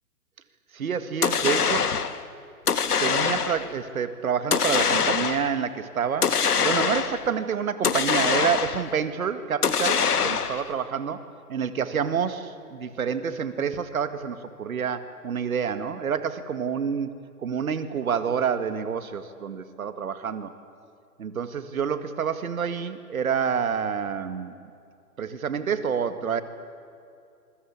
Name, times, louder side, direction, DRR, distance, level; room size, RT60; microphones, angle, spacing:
voice 1, 0.7-1.9 3.0-11.2 11.5-20.5 21.2-24.5 25.2-26.4, right 7 dB, 65° right, 11 dB, 2.1 m, -28 dB
sound 1, 1.2-2.2 2.7-3.7 4.5-5.6 6.2-7.3 7.8-8.9 9.6-10.7, left 6 dB, 80° left, 1.6 m, -24 dB
27.0 x 21.5 x 8.6 m, 2.5 s
hypercardioid pair, 140°, 46 cm